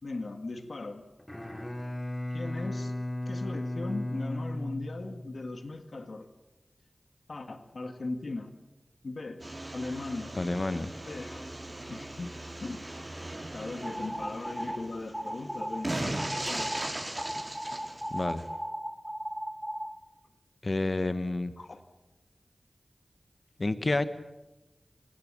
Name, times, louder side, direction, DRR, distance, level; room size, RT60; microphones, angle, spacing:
voice 1, 0.0-1.0 2.3-2.9 3.3-6.3 7.3-8.5 9.0-10.4 11.1-11.5 11.9-12.8 13.1-16.8 21.6-21.8, left 2 dB, 70° left, 8 dB, 1.9 m, -39 dB
Bowed string instrument, 1.2-5.5, left 1 dB, 20° left, 2.8 m, -35 dB
sound 1, 9.4-18.5, right 1 dB, 30° right, 4.8 m, -38 dB
voice 2, 10.4-10.9 18.1-18.4 20.6-21.5 23.6-24.0, left 2 dB, 50° left, 12 dB, 1.3 m, -29 dB
sound 2, 13.8-14.8 15.1-15.8 16.2-16.8 17.2-19.9, equal, 5° right, 3.0 m, -36 dB
28.0 x 17.5 x 8.6 m, 1.1 s
cardioid pair, 45°, 0 cm